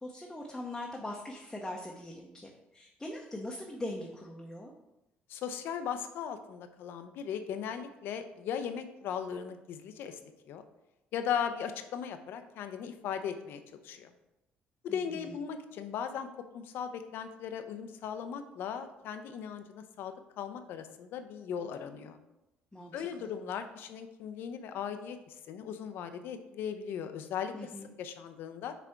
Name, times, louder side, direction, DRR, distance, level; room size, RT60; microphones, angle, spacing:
voice 1, 0.0-4.7 14.9-15.4 22.7-23.3 27.5-27.9, left 1 dB, 10° left, -1 dB, 0.8 m, -41 dB
voice 2, 5.3-10.2 10.5-10.6 11.1-14.1 14.8-22.2 22.9-27.5 28.0-28.8, left 8 dB, 75° left, 8 dB, 0.6 m, -38 dB
6.1 x 3.4 x 4.6 m, 0.92 s
cardioid pair, 100°, 4 cm